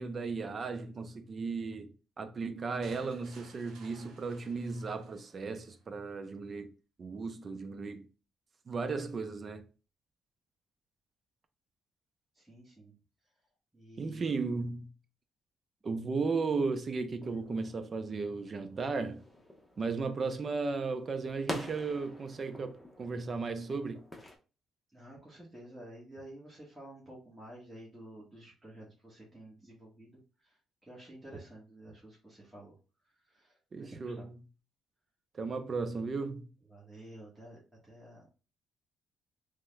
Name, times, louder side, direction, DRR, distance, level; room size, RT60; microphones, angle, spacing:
voice 1, 0.0-6.7 7.0-8.1 8.7-9.7 14.0-14.9 15.8-19.2 19.8-24.0 33.7-34.2 35.3-36.5, right 4 dB, 40° right, 0.5 m, -35 dB
sound 1, 2.8-5.8, right 4 dB, 80° right, 0.6 m, -57 dB
voice 2, 12.3-12.9 13.2-13.3 13.7-14.3 24.9-34.3 36.7-38.3, right 1 dB, 10° right, 1.2 m, -51 dB
sound 2, 17.2-24.4, left 1 dB, 10° left, 0.8 m, -47 dB
3.3 x 2.1 x 3.2 m
cardioid pair, 90°, 0 cm